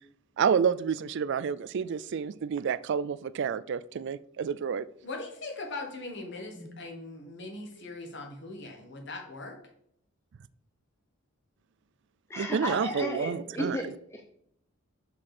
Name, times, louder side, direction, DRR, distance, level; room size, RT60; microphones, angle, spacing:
voice 1, 0.4-4.9 12.4-13.8, right 6 dB, 55° right, 18 dB, 0.3 m, -29 dB
voice 2, 5.0-9.6, left 2 dB, 55° left, 3 dB, 1.6 m, -40 dB
voice 3, 12.3-14.2, left 1 dB, 10° left, 2 dB, 0.6 m, -34 dB
6.1 x 5.7 x 5.0 m, 0.70 s
head